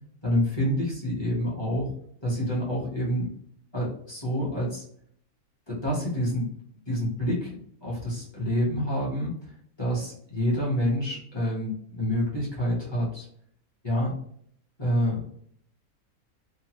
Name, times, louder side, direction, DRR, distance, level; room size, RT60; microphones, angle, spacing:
voice 1, 0.2-1.9 2.2-3.3 3.7-4.8 5.7-6.5 6.9-9.5 9.8-13.3 13.8-14.2 14.8-15.2, equal, 25° left, -6 dB, 0.7 m, -27 dB
2.9 x 2.1 x 2.9 m, 0.64 s
omnidirectional pair, 1.6 m